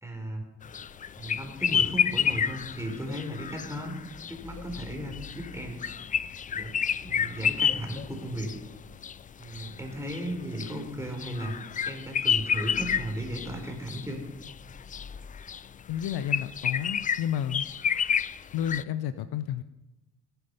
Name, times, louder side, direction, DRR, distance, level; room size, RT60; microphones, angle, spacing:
voice 1, 0.0-0.4 1.2-4.0 4.3-5.8 6.5-8.5 9.4-14.2, right 1 dB, 5° right, 2 dB, 4.1 m, -36 dB
sound 1, 0.6-18.8, left 7 dB, 20° left, 0.3 m, -30 dB
voice 2, 15.9-17.6 18.5-19.6, left 10 dB, 60° left, 13 dB, 0.7 m, -31 dB
18.0 x 7.9 x 5.5 m, 1.0 s
hypercardioid pair, 45°, 43 cm